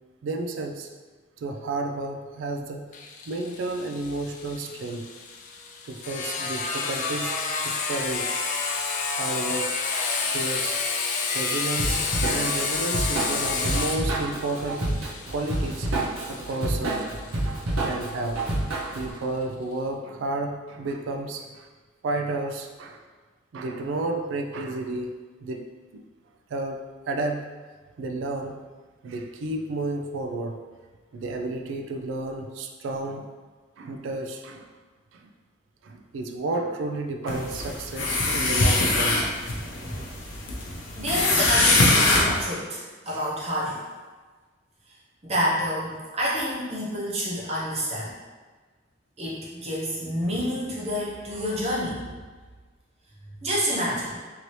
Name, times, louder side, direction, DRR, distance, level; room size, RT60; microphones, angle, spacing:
voice 1, 0.2-0.9 1.4-2.9 3.3-5.1 5.9-7.4 7.6-8.3 9.1-9.7 10.2-10.8 11.3-12.0 12.3-14.9 15.3-15.9 16.3-17.0 17.8-18.4 18.9-21.7 22.0-23.1 23.5-25.1 25.4-25.6 25.9-26.0 26.5-27.5 28.0-28.6 29.0-30.6 31.1-33.3 33.8-34.7 35.1-35.3 35.8-39.3, right 2 dB, 70° right, 4 dB, 0.3 m, -31 dB
Sawing, 2.9-18.4, left 4 dB, 40° left, 0.3 m, -30 dB
Drum kit / Drum, 11.8-19.1, right 2 dB, 90° right, 0.8 m, -28 dB
sound 1, 37.3-42.4, left 2 dB, 75° left, 0.6 m, -23 dB
voice 2, 40.9-43.8 45.2-48.1 49.2-52.1 53.4-54.2, equal, 35° right, -6 dB, 0.8 m, -28 dB
2.8 x 2.7 x 3.1 m, 1.4 s
head